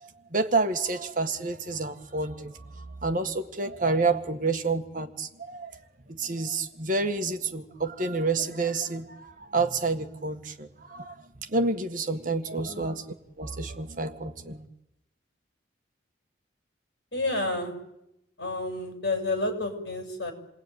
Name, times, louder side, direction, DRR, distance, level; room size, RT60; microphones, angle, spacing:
voice 1, 0.0-5.7 6.1-11.1 11.5-14.6, right 3 dB, 45° right, 6 dB, 1.8 m, -29 dB
voice 2, 17.1-17.7 18.4-20.3, left 2 dB, 60° left, 3 dB, 7.3 m, -30 dB
28.5 x 20.5 x 9.4 m, 0.85 s
head